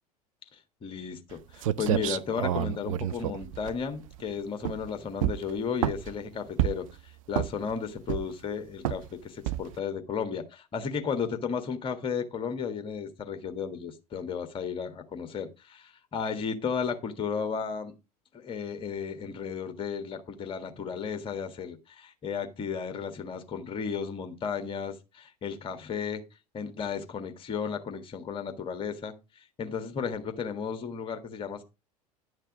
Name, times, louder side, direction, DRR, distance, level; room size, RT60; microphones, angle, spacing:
voice 1, 0.5-17.9 18.3-26.2 26.5-31.6, left 6 dB, 25° left, 7 dB, 1.7 m, -34 dB
sound 1, 1.3-1.4 1.6-4.2 4.6-4.9 5.2-6.2 6.6-6.9 7.3-7.7 8.1-8.5 8.8-9.1 9.5-9.8, right 12 dB, 60° right, 0.6 m, -29 dB
10.5 x 6.6 x 4.9 m, 0.26 s
figure-of-eight pair, 75°, 19 cm